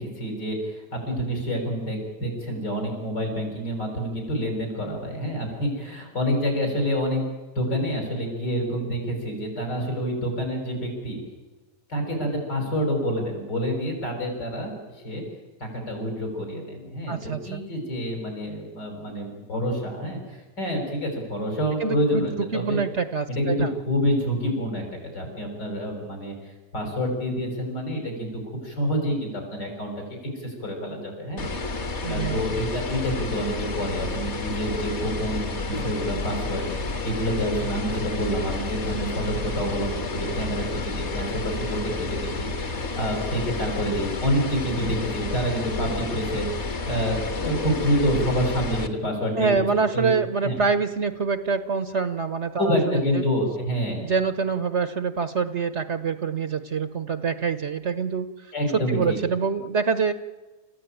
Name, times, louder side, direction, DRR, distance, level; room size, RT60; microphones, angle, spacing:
voice 1, 0.0-7.3 7.6-11.2 11.9-14.7 15.0-15.2 15.6-22.8 23.3-26.3 26.7-28.3 28.6-29.9 30.4-31.4 32.1-49.5 49.9-50.1 50.4-50.6 52.6-54.0 58.5-59.2, equal, 75° left, 2 dB, 7.3 m, -27 dB
voice 2, 17.1-17.6 21.8-23.7 32.0-32.4 49.3-53.2 54.0-58.5 58.9-60.1, right 5 dB, 50° right, 12 dB, 1.0 m, -26 dB
sound 1, 31.4-48.9, left 3 dB, 40° left, 1.7 m, -30 dB
29.5 x 15.0 x 9.1 m, 1.2 s
omnidirectional pair, 1.9 m